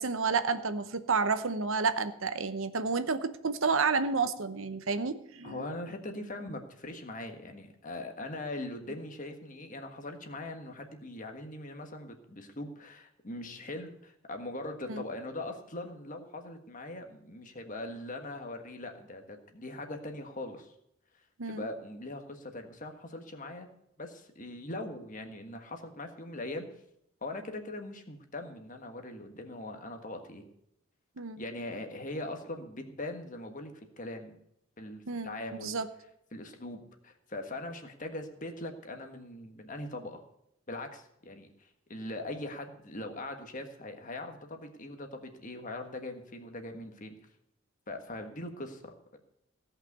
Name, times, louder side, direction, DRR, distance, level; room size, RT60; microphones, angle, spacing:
voice 1, 0.0-5.7 14.9-15.0 21.4-21.7 31.2-31.4 35.1-35.3 35.6-35.9, right 4 dB, 70° right, 12 dB, 0.8 m, -30 dB
voice 2, 5.4-20.7 21.5-23.7 24.0-26.7 27.2-30.4 31.4-34.4 34.8-35.8 36.3-40.2 40.7-47.1 47.9-49.2, left 2 dB, 35° left, 5 dB, 1.5 m, -41 dB
16.5 x 5.8 x 8.0 m, 0.75 s
head